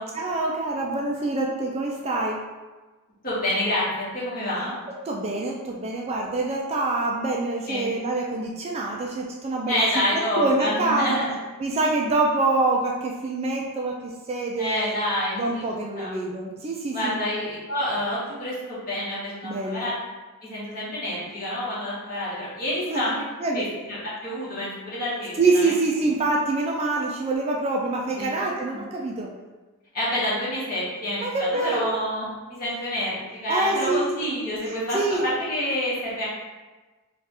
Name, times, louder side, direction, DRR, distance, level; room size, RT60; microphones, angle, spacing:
voice 1, 0.1-2.4 5.1-11.3 11.6-15.0 15.4-17.2 19.4-19.9 22.9-23.0 23.4-23.7 25.4-29.3 31.2-32.0 33.5-34.2 34.9-35.3, right 2 dB, 25° right, -1 dB, 0.3 m, -25 dB
voice 2, 3.2-4.7 7.7-7.9 9.7-11.3 14.6-15.6 16.0-16.1 16.9-19.9 20.4-23.2 23.5-25.3 25.6-25.7 28.2-28.3 29.9-36.3, left 1 dB, 40° left, -8 dB, 1.4 m, -28 dB
3.3 x 2.4 x 4.2 m, 1.2 s
head